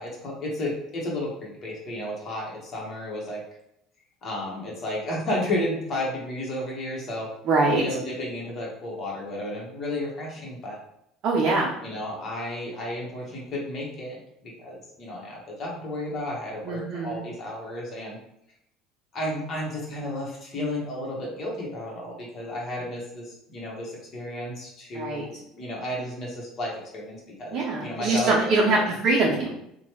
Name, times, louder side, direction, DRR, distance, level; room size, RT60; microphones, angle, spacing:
voice 1, 0.0-3.4 4.2-7.3 7.6-10.8 11.8-18.2 19.1-29.0, left 1 dB, 40° left, -3 dB, 1.0 m, -33 dB
voice 2, 7.5-7.8 11.2-11.7 16.6-17.2 24.9-25.2 27.5-29.5, right 3 dB, 50° right, -3 dB, 0.6 m, -23 dB
2.9 x 2.2 x 3.0 m, 0.79 s
cardioid pair, 125°, 0 cm